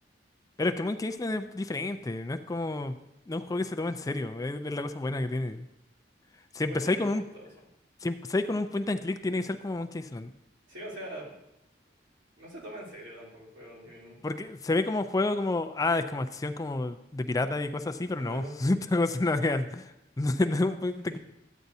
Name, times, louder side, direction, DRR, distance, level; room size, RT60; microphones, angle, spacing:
voice 1, 0.6-3.0 3.3-5.7 6.5-7.2 8.0-10.3 14.2-21.2, left 2 dB, 20° left, 9 dB, 0.4 m, -29 dB
voice 2, 6.7-7.1 7.3-7.5 10.7-11.4 12.4-14.2 18.0-18.5, right 1 dB, 90° right, -6 dB, 3.5 m, -43 dB
13.0 x 9.1 x 2.7 m, 0.87 s
head